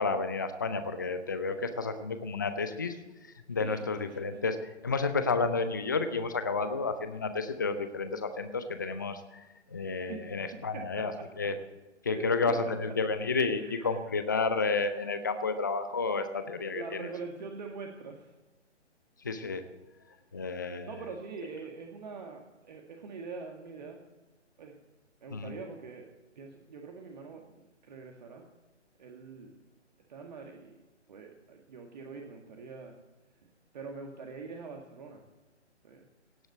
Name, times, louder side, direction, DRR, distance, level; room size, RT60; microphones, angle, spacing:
voice 1, 0.0-3.0 3.5-4.6 4.8-9.4 9.7-11.1 11.4-11.5 12.0-17.1 19.2-19.6 20.3-20.9 25.3-25.5, left 4 dB, 15° left, 10 dB, 0.5 m, -31 dB
voice 2, 10.7-11.5 12.1-12.7 13.5-14.0 16.7-18.3 20.8-24.0 24.6-24.7 25.2-26.1 26.4-28.4 29.0-29.5 30.1-30.7 31.1-33.0 33.7-35.3 35.8-36.1, right 4 dB, 35° right, 2 dB, 1.8 m, -43 dB
17.5 x 7.9 x 8.1 m, 1.1 s
figure-of-eight pair, 140°, 36 cm